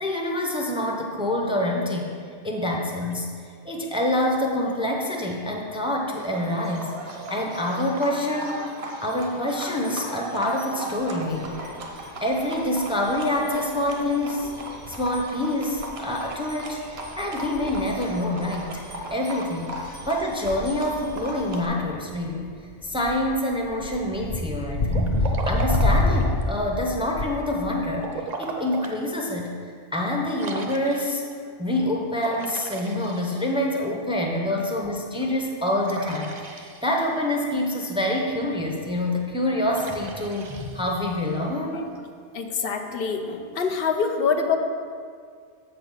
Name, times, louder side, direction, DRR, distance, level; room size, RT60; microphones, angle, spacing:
voice 1, 0.0-2.1 2.4-3.3 3.6-8.6 9.0-11.6 12.2-14.5 14.9-18.8 19.1-22.5 22.8-31.2 31.6-41.8, left 1 dB, 5° right, 0 dB, 0.6 m, -26 dB
Livestock farm animals working animals, 6.1-21.7, right 1 dB, 80° right, 1.1 m, -37 dB
sound 1, 11.0-11.1 11.3-11.9 12.3-12.7 13.1-13.2 13.6-14.2 14.4-15.3 15.7-16.4 16.7-19.0 19.6-27.4, left 2 dB, 40° left, 0.8 m, -27 dB
Liquid, 24.9-26.5 27.9-29.0 29.5-29.6 30.4-31.3 32.2-33.8 35.8-37.2 39.7-41.4, right 3 dB, 50° right, 0.7 m, -36 dB
voice 2, 42.3-44.6, left 5 dB, 70° left, 5 dB, 0.9 m, -25 dB
7.7 x 4.1 x 6.4 m, 2.1 s
omnidirectional pair, 1.0 m